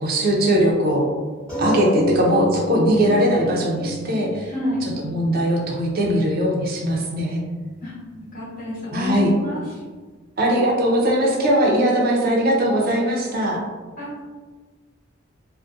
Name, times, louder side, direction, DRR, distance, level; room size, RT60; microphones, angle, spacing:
voice 1, 0.0-1.1 1.6-4.5 4.8-7.4 8.9-9.3 10.4-13.6, equal, 50° right, -1 dB, 0.5 m, -20 dB
sound 1, 1.5-6.5 7.2-7.3 7.6-7.7, left 1 dB, 5° left, 1.1 m, -29 dB
voice 2, 4.5-4.9 7.8-7.9 8.3-9.6 14.0-14.2, left 1 dB, 45° left, -8 dB, 0.9 m, -28 dB
2.4 x 2.1 x 2.5 m, 1.4 s
head